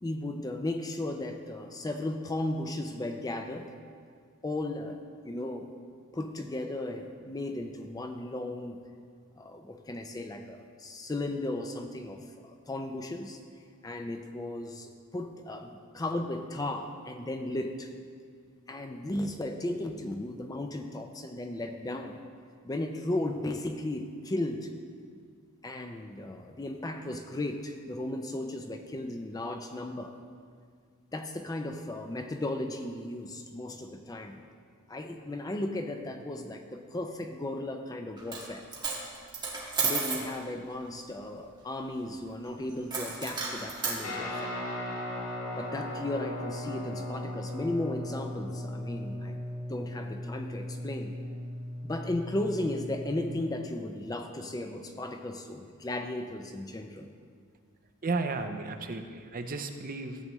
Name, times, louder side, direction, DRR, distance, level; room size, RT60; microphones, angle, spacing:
voice 1, 0.0-3.7 4.4-5.0 5.2-5.7 6.1-8.8 9.4-13.4 13.8-17.9 18.7-22.2 22.6-24.7 25.6-30.1 31.1-34.4 34.9-38.6 39.8-44.6 45.6-49.4 49.7-51.1 51.8-57.1, left 1 dB, 15° left, 5 dB, 0.4 m, -35 dB
Coin (dropping), 38.2-38.5 38.7-40.3 42.9-44.0, right 4 dB, 20° right, 1.6 m, -32 dB
Guitar, 44.0-53.4, left 1 dB, 70° left, 1.8 m, -37 dB
voice 2, 58.0-60.2, right 3 dB, 40° right, 6 dB, 0.6 m, -33 dB
14.0 x 7.7 x 3.1 m, 2.1 s
head